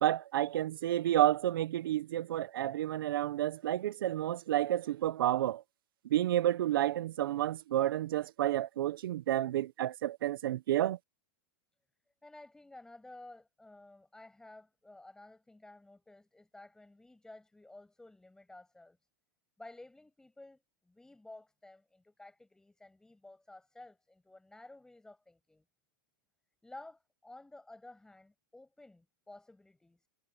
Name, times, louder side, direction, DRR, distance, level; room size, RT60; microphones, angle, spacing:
voice 1, 0.0-5.6 6.1-11.0, right 13 dB, 70° right, 0.9 m, -30 dB
voice 2, 12.2-19.0 19.6-25.6 26.6-30.1, left 2 dB, 5° left, 6.8 m, -54 dB
hypercardioid pair, 140°, 12 cm